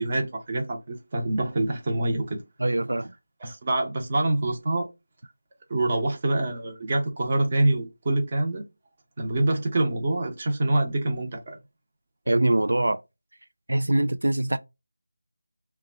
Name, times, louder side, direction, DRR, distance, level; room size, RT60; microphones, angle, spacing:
voice 1, 0.0-2.4 3.4-4.9 5.7-8.6 9.2-11.6, right 2 dB, 25° right, 0.9 m, -25 dB
voice 2, 2.6-3.1 12.3-13.0 13.7-14.6, right 1 dB, 80° right, 0.4 m, -23 dB
2.9 x 2.3 x 3.7 m
figure-of-eight pair, 175°, 0 cm